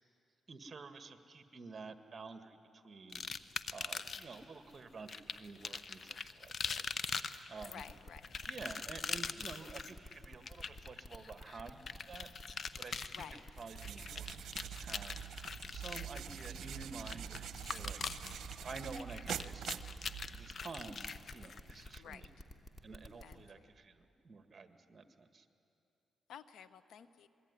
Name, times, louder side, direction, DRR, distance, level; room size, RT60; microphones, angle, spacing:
voice 1, 0.5-3.2 3.7-6.8 7.1-7.8 8.5-15.2 15.7-18.0 18.6-19.7 20.3-22.3 22.8-25.5, right 4 dB, 40° right, 8 dB, 1.9 m, -50 dB
sound 1, 3.1-4.4 5.1-22.0, left 5 dB, 55° left, 1.0 m, -43 dB
sound 2, 7.6-23.3, left 1 dB, 30° left, 2.7 m, -51 dB
voice 2, 7.7-8.2 13.2-13.4 22.0-22.3 23.2-23.4 26.3-27.3, left 8 dB, 80° left, 13 dB, 1.0 m, -51 dB
sound 3, 13.6-20.6, right 10 dB, 80° right, 0.9 m, -45 dB
26.5 x 21.5 x 9.9 m, 2.7 s
cardioid pair, 80°, 0 cm